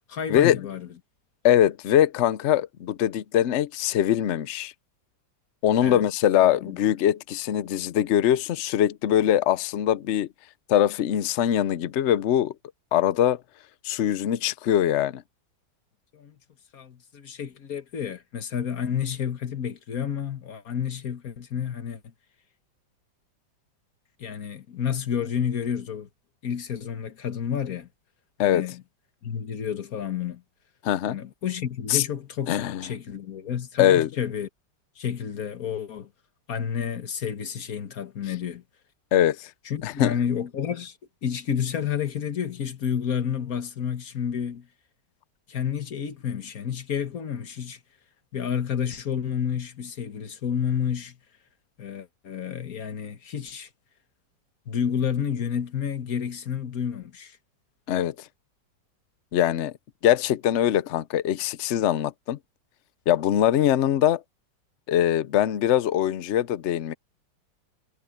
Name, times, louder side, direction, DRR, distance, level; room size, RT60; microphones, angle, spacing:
voice 1, 0.1-0.9 5.8-6.1 6.6-6.8 16.1-16.4 16.7-22.0 24.2-26.1 26.4-27.9 28.4-28.8 29.2-30.4 31.1-34.5 35.0-36.1 36.5-38.6 39.7-44.7 45.5-47.8 48.3-51.2 51.8-53.7 54.7-57.4, left 8 dB, 50° left, 1.7 m, -30 dB
voice 2, 1.4-4.7 5.6-10.3 10.7-12.5 12.9-13.4 13.8-15.2 28.4-28.6 30.8-31.2 31.9-32.0 32.5-32.8 33.8-34.1 39.1-39.5 39.8-40.1 57.9-58.1 59.3-59.7 60.0-62.4 63.1-64.2 64.9-66.9, left 11 dB, 80° left, 0.6 m, -22 dB
omnidirectional pair, 2.0 m